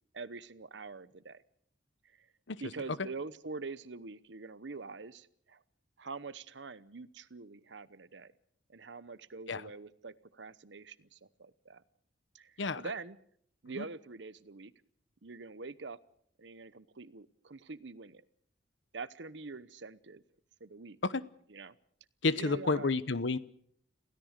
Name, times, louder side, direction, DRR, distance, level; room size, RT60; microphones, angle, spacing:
voice 1, 0.1-1.4 2.6-5.6 6.0-8.3 8.7-11.8 12.3-13.2 13.6-14.7 15.2-16.0 16.4-18.2 18.9-20.2 20.6-21.0 21.5-21.7 22.3-22.9, right 4 dB, 70° right, 16 dB, 0.9 m, -45 dB
voice 2, 22.2-23.4, left 3 dB, 75° left, 16 dB, 1.0 m, -30 dB
27.5 x 17.0 x 6.6 m, 0.65 s
head